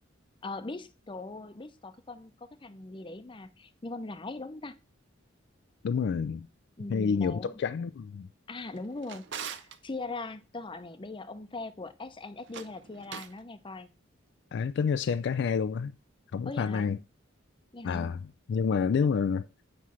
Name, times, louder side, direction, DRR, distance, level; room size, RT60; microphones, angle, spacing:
voice 1, 0.4-4.8 6.8-7.6 8.5-13.9 16.4-16.9 17.7-18.2, left 2 dB, 25° left, 0.6 m, -40 dB
voice 2, 5.8-6.5 6.9-8.3 14.5-15.9 16.3-17.0 17.8-18.2 18.5-19.5, left 6 dB, 60° left, 0.3 m, -28 dB
Drawer open or close, 8.6-9.8 12.4-13.4, right 8 dB, 65° right, 0.7 m, -42 dB
9.4 x 3.2 x 6.2 m
head